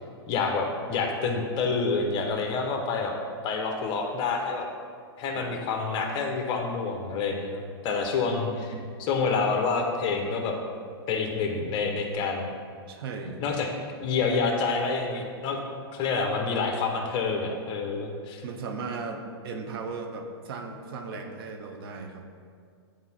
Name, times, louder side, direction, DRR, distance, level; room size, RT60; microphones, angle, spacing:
voice 1, 0.3-3.1 3.4-4.7 5.2-8.7 9.0-10.6 11.1-12.5 13.4-13.7 14.0-15.6 15.9-18.4, left 4 dB, 35° left, 3 dB, 1.0 m, -28 dB
voice 2, 12.9-13.4 18.4-22.2, right 4 dB, 60° right, 4 dB, 0.9 m, -37 dB
9.5 x 4.5 x 4.3 m, 2.2 s
hypercardioid pair, 135°, 14 cm